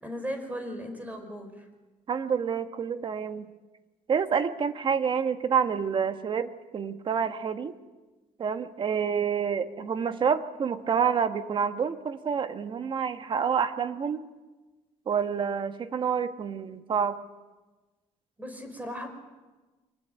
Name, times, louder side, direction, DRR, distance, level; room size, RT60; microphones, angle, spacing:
voice 1, 0.0-1.7 18.4-19.1, equal, 10° right, 7 dB, 5.1 m, -37 dB
voice 2, 2.1-3.5 4.1-7.7 8.4-14.2 15.1-17.2, right 7 dB, 40° right, 9 dB, 1.5 m, -28 dB
25.5 x 20.0 x 9.3 m, 1.2 s
cardioid pair, 125°, 13 cm